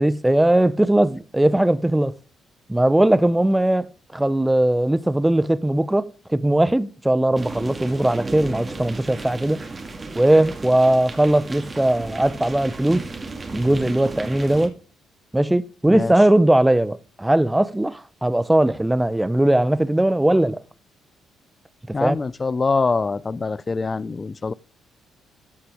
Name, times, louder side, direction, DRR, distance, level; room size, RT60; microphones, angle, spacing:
voice 1, 0.0-2.1 2.7-9.6 10.2-13.0 13.5-14.7 15.3-20.6 22.0-22.2, right 1 dB, 10° right, 0.7 m, -19 dB
sound 1, 7.4-14.7, right 3 dB, 25° right, 2.0 m, -35 dB
voice 2, 21.9-24.5, left 4 dB, 25° left, 0.4 m, -24 dB
13.5 x 5.8 x 5.0 m
cardioid pair, 100°, 0 cm